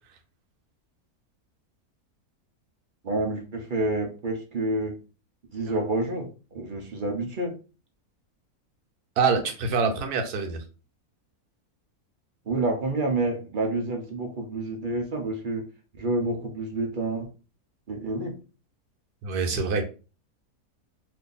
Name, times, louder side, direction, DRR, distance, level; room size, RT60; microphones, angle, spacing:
voice 1, 3.0-4.9 5.5-7.5 12.5-15.6 16.0-17.3 17.9-18.3, right 2 dB, 50° right, 3 dB, 0.6 m, -28 dB
voice 2, 9.2-10.6 19.2-19.9, right 5 dB, 80° right, 5 dB, 1.2 m, -25 dB
2.7 x 2.6 x 3.8 m, 0.34 s
omnidirectional pair, 1.6 m